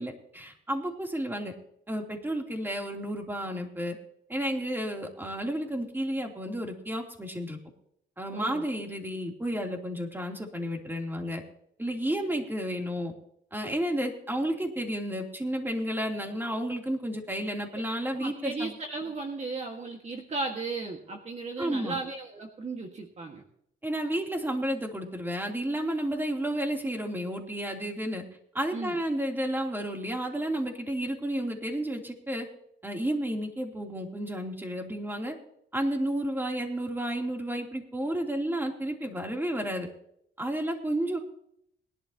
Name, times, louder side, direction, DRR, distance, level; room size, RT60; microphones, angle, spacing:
voice 1, 0.0-1.5 1.9-4.0 4.3-7.6 8.2-11.4 11.8-13.1 13.5-18.8 21.6-22.0 23.8-28.2 28.5-32.5 32.8-35.3 35.7-39.9 40.4-41.2, right 1 dB, 10° right, 2 dB, 3.0 m, -31 dB
voice 2, 18.2-23.4 28.7-29.0, right 3 dB, 35° right, 2 dB, 1.7 m, -35 dB
21.0 x 11.5 x 2.9 m, 0.71 s
cardioid pair, 90°, 20 cm